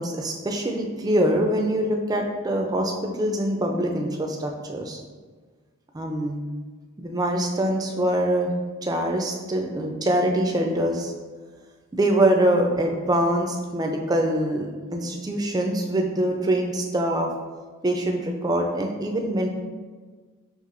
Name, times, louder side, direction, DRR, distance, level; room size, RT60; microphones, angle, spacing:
voice 1, 0.0-5.0 5.9-6.4 7.0-8.5 8.8-11.1 11.9-17.3 17.8-19.5, right 1 dB, 15° right, 2 dB, 0.3 m, -24 dB
5.7 x 2.9 x 2.5 m, 1.4 s
head